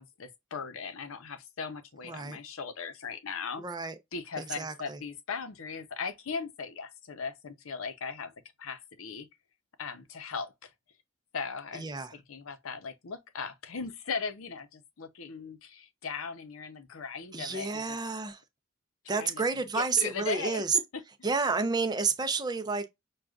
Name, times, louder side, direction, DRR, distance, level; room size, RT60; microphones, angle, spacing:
voice 1, 0.0-8.3 8.6-9.3 9.8-10.7 11.3-18.0 19.1-19.4 19.7-20.6, left 5 dB, 90° left, 0.7 m, -38 dB
voice 2, 2.0-2.4 3.6-4.0 4.4-5.0 11.7-12.1 17.3-18.4 19.1-20.8 21.2-22.9, right 4 dB, 20° right, 0.5 m, -30 dB
6.3 x 2.3 x 2.3 m
head